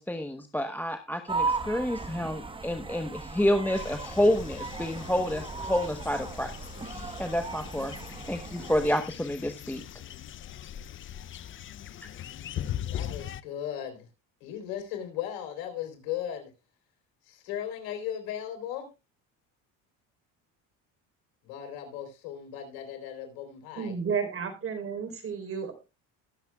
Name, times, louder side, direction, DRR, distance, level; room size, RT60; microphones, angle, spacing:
voice 1, 0.0-6.5 6.8-8.0 8.3-9.8, left 1 dB, 5° left, 7 dB, 0.9 m, -29 dB
sound 1, 1.3-8.9, right 4 dB, 15° right, 1.1 m, -36 dB
sound 2, 3.7-13.4, left 11 dB, 35° left, 0.5 m, -40 dB
voice 2, 12.9-14.1 14.4-16.5 17.2-18.9 21.4-23.9, left 10 dB, 80° left, 5 dB, 3.9 m, -37 dB
voice 3, 23.8-25.7, right 6 dB, 35° right, 7 dB, 3.7 m, -32 dB
21.5 x 7.4 x 2.3 m, 0.27 s
supercardioid pair, 100°, 36 cm